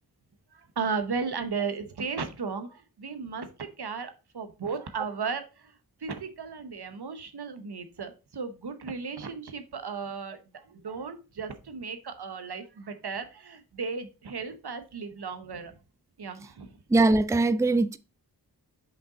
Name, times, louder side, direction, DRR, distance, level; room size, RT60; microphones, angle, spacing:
voice 1, 0.5-5.7 6.0-10.4 10.7-15.7 16.2-16.7, right 5 dB, 85° right, 1.0 m, -35 dB
voice 2, 16.9-18.0, right 2 dB, 10° right, 0.4 m, -21 dB
5.7 x 5.2 x 3.8 m
wide cardioid pair, 45°, 38 cm